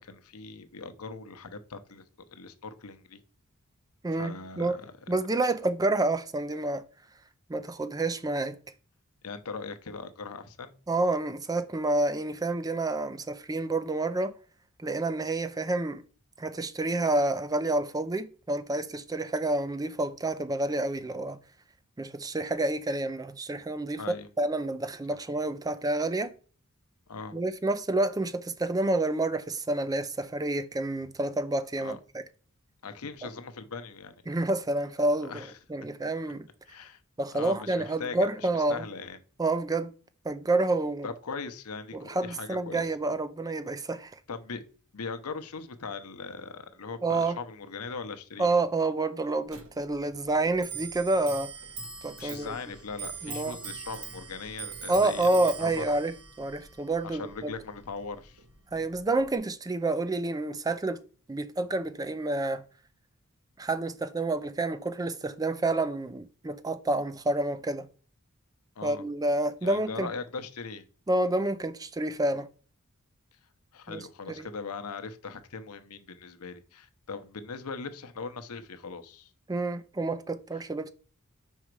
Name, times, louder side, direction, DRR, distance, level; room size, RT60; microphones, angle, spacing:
voice 1, 0.0-3.2 4.1-4.9 9.2-10.7 24.0-24.3 25.1-25.2 27.1-27.4 31.8-32.0 32.8-34.2 35.2-35.6 36.7-37.0 37.3-39.2 41.0-42.8 44.3-44.6 44.9-48.5 52.2-55.8 57.0-58.4 68.8-69.0 69.6-70.9 73.7-79.3, left 4 dB, 80° left, 0.8 m, -40 dB
voice 2, 4.0-4.8 5.1-6.8 7.5-8.6 10.9-14.4 14.8-16.0 16.4-21.4 22.0-24.0 24.4-26.3 27.3-32.2 34.3-36.5 37.2-38.8 39.4-39.9 40.2-41.1 41.9-44.1 47.0-47.4 48.4-51.5 52.0-52.6 53.2-53.6 54.9-57.5 58.7-61.0 61.3-62.6 63.6-67.9 68.8-70.1 71.1-72.5 73.9-74.0 74.3-74.5 79.5-80.9, right 2 dB, 15° right, 0.5 m, -29 dB
Clock, 49.5-59.4, right 5 dB, 90° right, 1.1 m, -43 dB
5.5 x 5.0 x 4.6 m
head